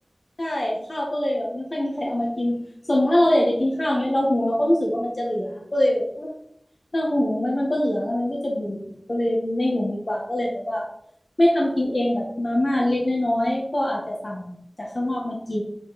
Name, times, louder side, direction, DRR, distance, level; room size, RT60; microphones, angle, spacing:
voice 1, 0.4-2.6 2.9-6.3 6.9-8.8 9.1-10.8 11.4-15.6, left 1 dB, 50° left, -2 dB, 1.7 m, -23 dB
8.8 x 4.9 x 4.3 m, 0.73 s
wide cardioid pair, 55°, 0 cm